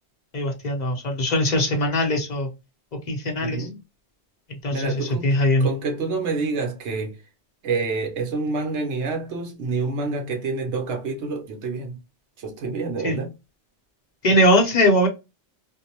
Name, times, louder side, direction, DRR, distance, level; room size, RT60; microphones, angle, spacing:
voice 1, 0.3-2.5 3.1-3.6 4.6-5.7 13.0-13.2 14.2-15.1, left 1 dB, 45° left, 0.7 m, -20 dB
voice 2, 3.4-3.8 4.7-5.3 5.6-7.2 7.6-12.0 12.4-13.4, right 3 dB, 80° right, 1.0 m, -28 dB
2.6 x 2.0 x 2.8 m
omnidirectional pair, 1.2 m